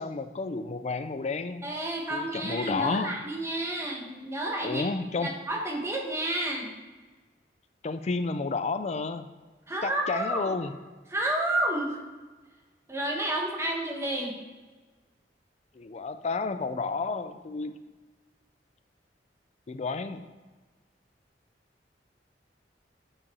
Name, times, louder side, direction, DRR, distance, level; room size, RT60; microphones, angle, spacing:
voice 1, 0.0-1.6 2.1-3.1 4.6-5.3 7.8-9.3 9.8-10.7 15.7-17.7 19.7-20.2, left 4 dB, 40° left, 10 dB, 0.4 m, -31 dB
voice 2, 1.6-4.9 5.2-6.7 9.7-10.5 11.1-12.0 12.9-14.4, right 1 dB, 15° right, 0 dB, 1.1 m, -30 dB
7.2 x 5.0 x 4.2 m, 1.3 s
head